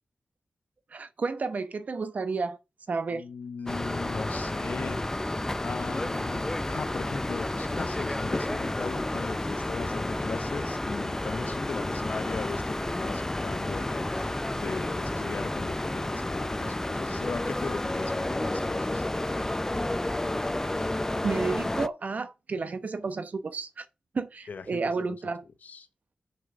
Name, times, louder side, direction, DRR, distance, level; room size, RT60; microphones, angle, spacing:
voice 1, 0.9-2.6 2.9-3.2 21.2-23.9 24.1-25.4, right 4 dB, 65° right, 1.0 m, -31 dB
voice 2, 3.1-5.1 5.6-19.0 24.5-24.9 25.6-25.9, left 5 dB, 75° left, 1.0 m, -38 dB
sound 1, 3.7-21.9, left 1 dB, 20° left, 0.5 m, -31 dB
6.2 x 5.6 x 6.7 m
cardioid pair, 45°, 3 cm